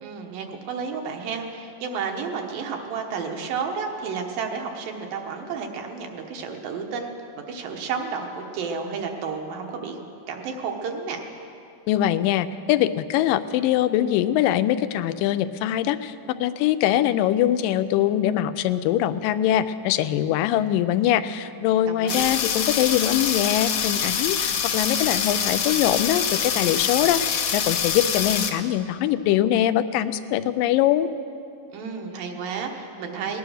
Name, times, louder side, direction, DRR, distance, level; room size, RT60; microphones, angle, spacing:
voice 1, 0.0-7.1 7.5-10.0 10.3-11.2 21.9-22.4 31.7-33.4, right 5 dB, 80° right, 3 dB, 2.8 m, -31 dB
voice 2, 11.9-31.1, left 12 dB, 90° left, 11 dB, 2.2 m, -23 dB
sound 1, 22.1-28.5, left 7 dB, 70° left, 1.5 m, -25 dB
18.5 x 10.5 x 6.4 m, 2.7 s
omnidirectional pair, 3.9 m